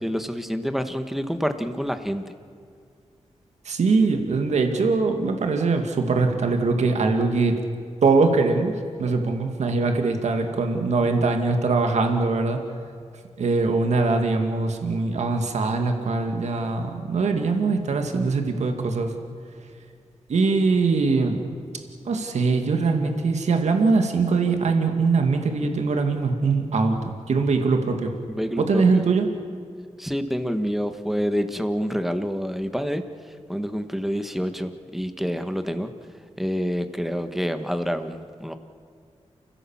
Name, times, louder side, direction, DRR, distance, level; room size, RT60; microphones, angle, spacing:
voice 1, 0.0-2.2 28.3-29.0 30.0-33.0 33.5-35.9 36.4-38.5, equal, ahead, 8 dB, 1.5 m, -27 dB
voice 2, 3.6-7.6 8.0-12.6 13.4-19.1 20.3-21.4 22.0-28.1 28.6-29.3, right 4 dB, 80° right, 4 dB, 2.1 m, -22 dB
29.5 x 16.5 x 7.4 m, 2.2 s
wide cardioid pair, 90°, 12 cm